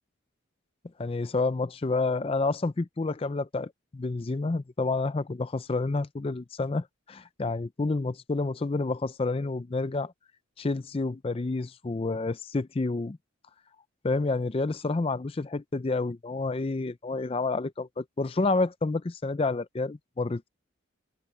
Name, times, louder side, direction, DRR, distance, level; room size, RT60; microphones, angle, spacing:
voice 1, 1.0-10.1 10.6-13.2 14.0-20.5, left 3 dB, 25° left, 0.4 m, -29 dB
open air
head